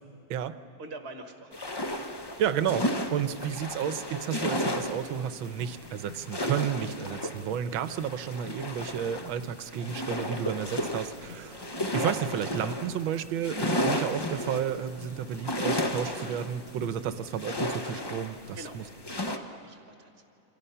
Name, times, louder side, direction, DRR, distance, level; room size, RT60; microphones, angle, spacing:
voice 1, 0.8-1.6 18.5-20.2, right 2 dB, 35° right, 4 dB, 1.5 m, -45 dB
sound 1, 1.5-19.4, left 1 dB, 30° left, 0.4 m, -33 dB
voice 2, 2.4-11.6 11.9-18.8, right 9 dB, 80° right, 12 dB, 1.6 m, -32 dB
sound 2, 4.6-16.9, left 4 dB, 55° left, 6.5 m, -50 dB
29.5 x 25.0 x 5.7 m, 2.8 s
omnidirectional pair, 2.2 m